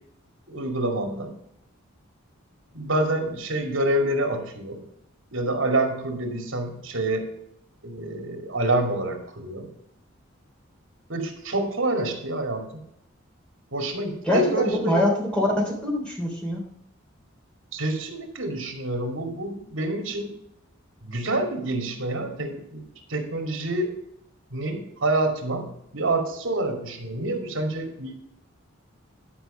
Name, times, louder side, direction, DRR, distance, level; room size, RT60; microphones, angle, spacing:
voice 1, 0.5-1.3 2.7-4.8 5.3-7.3 7.8-9.7 11.1-12.6 13.7-15.0 17.7-20.3 21.0-22.8 23.1-23.9 24.5-28.2, right 2 dB, 75° right, 4 dB, 2.5 m, -27 dB
voice 2, 14.2-16.6, left 1 dB, 5° left, -2 dB, 3.4 m, -24 dB
11.5 x 5.2 x 6.7 m, 0.76 s
head